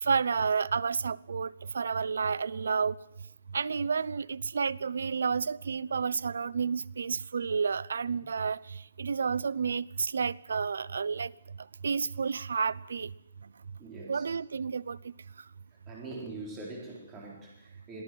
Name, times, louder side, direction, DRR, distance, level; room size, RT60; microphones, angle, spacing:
voice 1, 0.0-3.0 3.5-11.3 11.8-13.1 14.1-15.0, right 5 dB, 80° right, 0.7 m, -30 dB
voice 2, 13.8-14.3 15.9-18.0, right 3 dB, 15° right, 4.1 m, -43 dB
23.0 x 16.0 x 7.7 m
hypercardioid pair, 170°, 0 cm